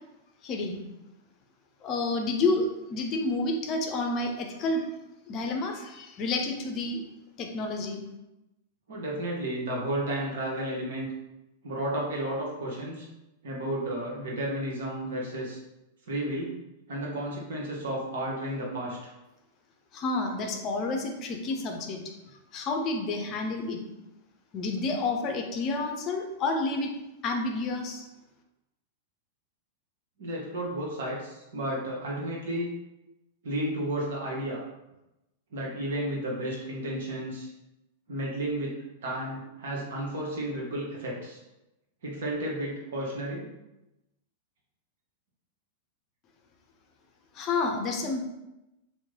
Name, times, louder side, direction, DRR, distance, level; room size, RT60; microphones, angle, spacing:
voice 1, 0.4-0.8 1.8-4.9 5.3-7.0 7.4-8.0 19.9-22.0 22.5-23.8 24.5-26.9 27.2-28.0 47.3-48.2, left 3 dB, 35° left, 3 dB, 0.5 m, -29 dB
voice 2, 8.9-11.1 11.6-13.1 13.4-15.6 16.1-16.5 16.9-19.1 30.2-32.7 33.4-34.6 35.5-37.5 38.1-41.4 42.0-43.5, right 1 dB, 60° right, -3 dB, 1.0 m, -32 dB
3.0 x 2.1 x 3.7 m, 0.95 s
figure-of-eight pair, 95°, 0 cm